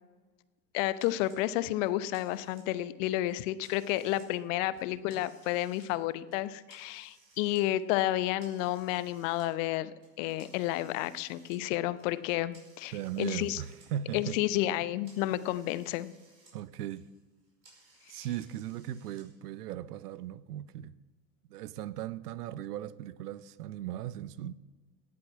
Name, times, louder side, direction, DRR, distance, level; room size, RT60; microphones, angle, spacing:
voice 1, 0.7-9.9 10.2-13.6 14.1-16.1, left 15 dB, 50° left, 0.9 m, -31 dB
sound 1, 1.0-1.4 1.8-2.9 3.3-4.3 4.6-5.9 6.3-7.6 8.0-9.5 10.0-13.9 14.2-16.5 16.8-19.2, right 3 dB, 85° right, 5.5 m, -61 dB
voice 2, 12.9-14.4 16.5-17.1 18.1-20.9 21.5-24.5, right 11 dB, 70° right, 0.8 m, -38 dB
17.0 x 8.7 x 7.4 m
hypercardioid pair, 90°, 49 cm